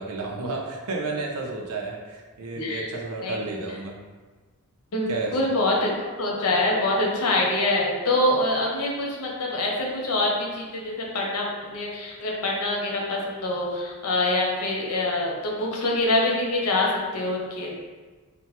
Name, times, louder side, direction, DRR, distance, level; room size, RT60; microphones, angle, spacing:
voice 1, 0.0-4.0 5.1-5.4, right 3 dB, 90° right, 0 dB, 0.5 m, -31 dB
voice 2, 2.6-2.9 3.2-3.4 4.9-5.9 6.2-17.7, left 2 dB, 85° left, -2 dB, 0.7 m, -25 dB
2.9 x 2.2 x 3.0 m, 1.3 s
head